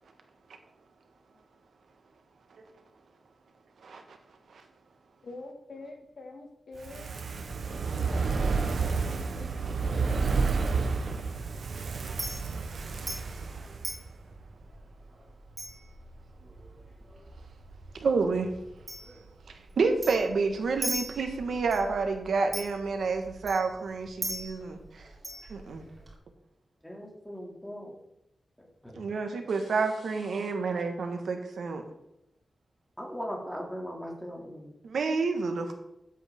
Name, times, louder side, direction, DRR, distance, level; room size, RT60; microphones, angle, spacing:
voice 1, 3.8-4.7 17.4-17.5 17.9-18.9 19.4-25.1 25.5-25.8 28.9-31.8 34.8-35.7, right 4 dB, 85° right, 5 dB, 1.5 m, -30 dB
voice 2, 5.2-7.1 8.4-10.4 25.4-25.6 29.5-30.5, left 3 dB, 70° left, 1 dB, 2.3 m, -47 dB
Fire, 6.7-14.1 14.4-14.5, right 4 dB, 65° right, 1.0 m, -30 dB
Chink clink, 7.9-26.2, right 1 dB, 35° right, 3.5 m, -43 dB
voice 3, 26.8-28.0 28.8-29.0 33.0-34.7, equal, 5° left, -1 dB, 2.6 m, -39 dB
12.5 x 8.3 x 3.7 m, 0.85 s
wide cardioid pair, 145°, 0 cm